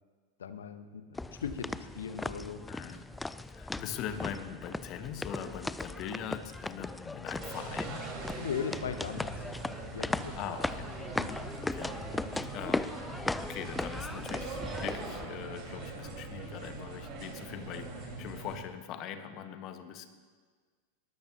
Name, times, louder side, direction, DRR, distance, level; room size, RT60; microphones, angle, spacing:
voice 1, 0.4-1.0 1.3-2.6 2.9-3.0 3.8-3.9 8.4-9.3 9.9-10.3 11.1-11.4, left 7 dB, 65° left, 9 dB, 1.2 m, -38 dB
sound 1, 1.1-15.2, left 2 dB, 5° left, 0.4 m, -38 dB
voice 2, 2.7-3.1 3.5-8.1 10.4-10.9 11.5-12.0 12.5-13.0 13.4-20.1, left 9 dB, 35° left, 8 dB, 1.4 m, -42 dB
sound 2, 7.4-18.6, right 3 dB, 35° right, 4.7 m, -42 dB
22.5 x 19.0 x 3.0 m, 1.5 s
figure-of-eight pair, 90°, 0 cm